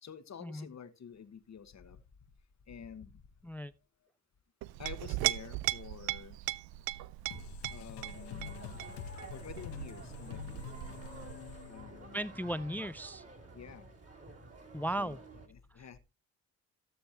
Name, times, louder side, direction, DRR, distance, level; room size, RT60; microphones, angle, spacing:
voice 1, 0.0-2.0 2.7-3.1 4.8-6.4 7.7-8.8 9.3-10.9 11.7-12.4 13.5-13.9 15.0-15.2 15.5-16.0, left 7 dB, 45° left, 1.3 m, -49 dB
Chink clink, 4.6-11.7, right 17 dB, 65° right, 0.6 m, -38 dB
sound 1, 7.3-12.6, left 8 dB, 80° left, 1.0 m, -46 dB
sound 2, 8.1-15.5, right 2 dB, 35° right, 2.9 m, -51 dB
voice 2, 12.1-13.2 14.7-15.2 15.7-16.0, right 1 dB, 5° left, 0.4 m, -37 dB
16.5 x 7.0 x 2.8 m
hypercardioid pair, 50°, 39 cm